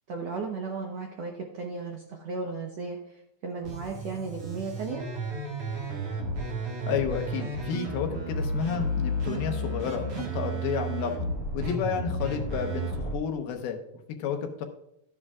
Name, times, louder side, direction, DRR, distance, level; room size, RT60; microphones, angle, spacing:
voice 1, 0.1-5.0, right 4 dB, 70° right, 0 dB, 1.6 m, -35 dB
sound 1, 3.6-13.1, right 1 dB, 45° right, 2.1 m, -32 dB
voice 2, 6.8-11.1 11.5-13.8 14.2-14.6, left 7 dB, 85° left, 4 dB, 3.0 m, -31 dB
13.5 x 9.8 x 2.4 m, 0.76 s
omnidirectional pair, 4.3 m